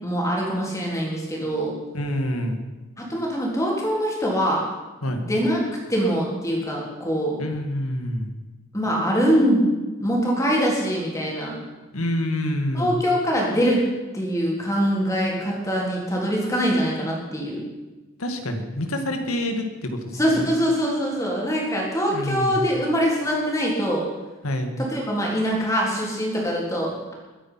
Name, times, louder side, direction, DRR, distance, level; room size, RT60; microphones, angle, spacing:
voice 1, 0.0-1.7 3.0-4.6 5.1-5.6 5.9-7.4 8.7-9.6 10.0-11.5 12.7-13.8 14.1-17.6 20.1-24.1 24.8-27.1, equal, 15° left, -3 dB, 3.7 m, -23 dB
voice 2, 1.9-2.6 5.0-5.2 7.4-8.3 11.9-13.0 18.2-20.0 20.3-20.4 22.1-22.6 24.4-24.7, left 1 dB, 90° left, 5 dB, 2.1 m, -27 dB
21.5 x 9.1 x 5.8 m, 1.2 s
head